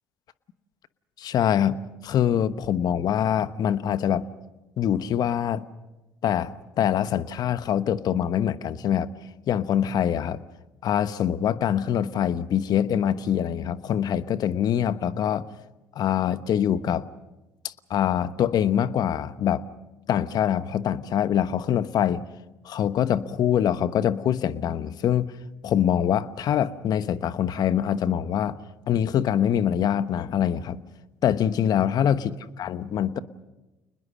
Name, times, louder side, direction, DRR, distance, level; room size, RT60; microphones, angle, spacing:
voice 1, 1.2-1.8 2.0-4.2 4.8-5.6 6.2-9.1 9.5-10.4 10.8-15.4 15.9-17.0 17.6-19.6 20.1-22.2 22.6-25.3 25.6-28.6 28.9-30.8 31.2-33.2, left 9 dB, 55° left, 13 dB, 1.1 m, -24 dB
29.0 x 20.5 x 6.4 m, 1.0 s
hypercardioid pair, 65°, 8 cm